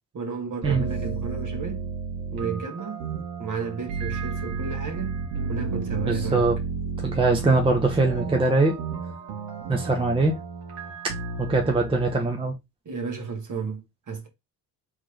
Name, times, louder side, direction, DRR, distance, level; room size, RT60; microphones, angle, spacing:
voice 1, 0.1-1.9 2.3-3.0 3.4-6.5 12.8-14.3, right 5 dB, 35° right, 1.5 m, -33 dB
sound 1, 0.6-12.2, right 5 dB, 65° right, 1.6 m, -32 dB
voice 2, 6.1-6.6 7.0-8.8 9.7-10.4 11.0-11.1 11.4-12.5, right 3 dB, 10° right, 0.8 m, -22 dB
3.5 x 3.3 x 3.4 m
hypercardioid pair, 50°, 50 cm